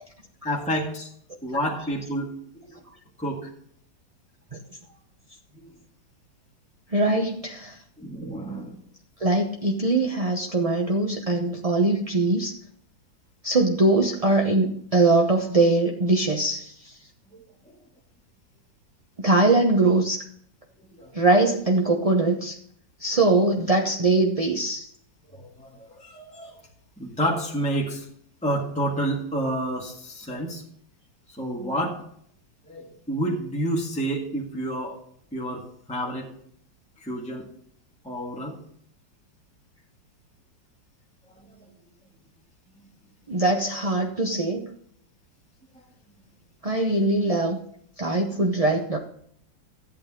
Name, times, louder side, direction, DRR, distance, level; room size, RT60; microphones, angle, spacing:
voice 1, 0.4-1.1 1.4-2.3 3.2-3.5 5.6-5.7 8.0-8.8 21.0-21.1 25.4-25.7 26.0-26.6 27.0-28.0 28.4-30.6 31.4-32.0 32.7-35.0 35.3-35.6 35.9-36.3 37.0-37.4 38.0-38.6 42.8-42.9, right 1 dB, 5° left, -2 dB, 1.6 m, -29 dB
voice 2, 6.9-7.8 9.2-12.6 13.4-17.0 19.2-20.2 21.1-22.6 23.0-24.9 43.3-44.7 46.6-47.6 48.0-49.0, right 2 dB, 35° right, 1 dB, 0.6 m, -22 dB
13.5 x 8.7 x 3.7 m, 0.66 s
omnidirectional pair, 2.0 m